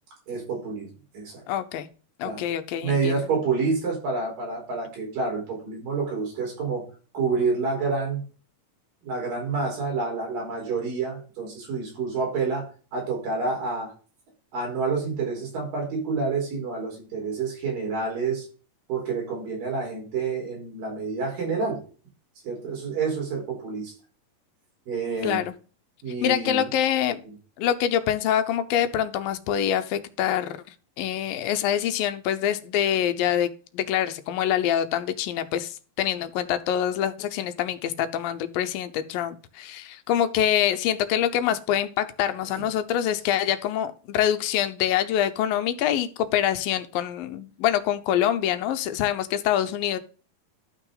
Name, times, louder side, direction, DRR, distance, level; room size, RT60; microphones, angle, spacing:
voice 1, 0.3-0.9 1.1-1.4 2.2-2.4 2.8-6.8 7.1-8.2 9.0-12.7 12.9-13.9 14.5-18.5 18.9-21.8 22.4-23.9 24.9-25.4 26.0-26.7, right 4 dB, 70° right, -1 dB, 6.0 m, -28 dB
voice 2, 1.5-1.9 2.2-3.2 25.2-25.5 26.2-27.2 27.6-30.6 31.0-50.0, left 10 dB, 85° left, 10 dB, 2.6 m, -25 dB
12.5 x 6.1 x 3.9 m, 0.38 s
omnidirectional pair, 4.0 m